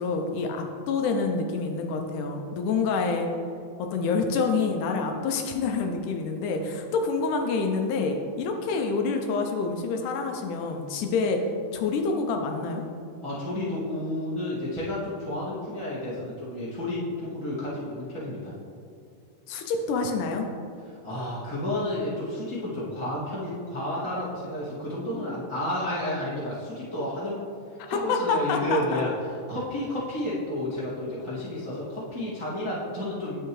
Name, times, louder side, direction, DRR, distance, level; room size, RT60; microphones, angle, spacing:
voice 1, 0.0-3.3 3.8-11.4 11.7-12.8 19.5-20.5 28.1-29.0, left 4 dB, 80° left, 4 dB, 2.0 m, -27 dB
voice 2, 13.2-18.5 20.9-27.4 27.9-29.1 29.5-33.4, left 1 dB, 25° right, -9 dB, 0.6 m, -31 dB
10.0 x 7.5 x 3.1 m, 2.4 s
omnidirectional pair, 3.8 m